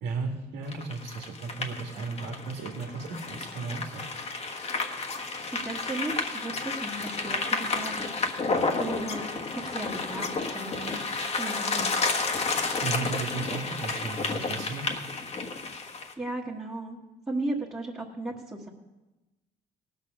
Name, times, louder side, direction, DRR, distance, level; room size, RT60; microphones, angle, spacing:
voice 1, 0.0-4.0 12.5-14.9, right 4 dB, 90° right, 2 dB, 1.7 m, -35 dB
sound 1, 0.7-16.1, left 3 dB, 40° left, 1.4 m, -31 dB
voice 2, 5.5-8.2 8.8-10.9 11.4-12.0 16.2-17.0 17.3-18.7, right 2 dB, 15° right, -4 dB, 1.6 m, -35 dB
17.5 x 6.5 x 6.5 m, 1.0 s
cardioid pair, 110°, 17 cm